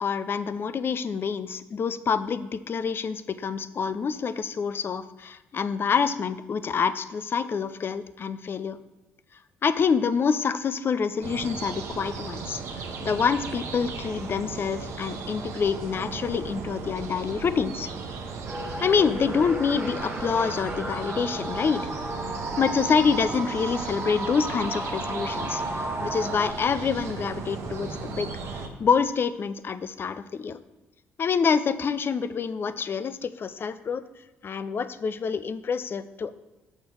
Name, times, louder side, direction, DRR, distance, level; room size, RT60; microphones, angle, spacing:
voice 1, 0.0-8.8 9.6-12.6 13.0-17.9 18.8-21.9 22.5-30.6 31.2-34.0 34.4-36.3, left 6 dB, 50° left, 14 dB, 0.5 m, -27 dB
sound 1, 11.2-28.7, right 4 dB, 70° right, 0.9 m, -36 dB
sound 2, 18.5-26.5, right 1 dB, 30° right, 1.1 m, -34 dB
6.9 x 4.3 x 6.1 m, 1.0 s
supercardioid pair, 60°, 5 cm